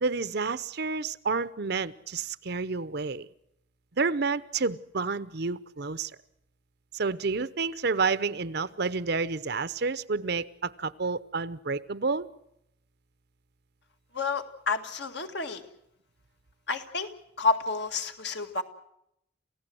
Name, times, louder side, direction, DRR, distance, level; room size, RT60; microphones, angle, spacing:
voice 1, 0.0-3.3 4.0-6.1 6.9-12.3, right 4 dB, 60° right, 0.8 m, -29 dB
voice 2, 14.1-15.6 16.7-17.1 17.4-18.6, left 3 dB, 60° left, 1.9 m, -29 dB
28.5 x 15.5 x 7.8 m
head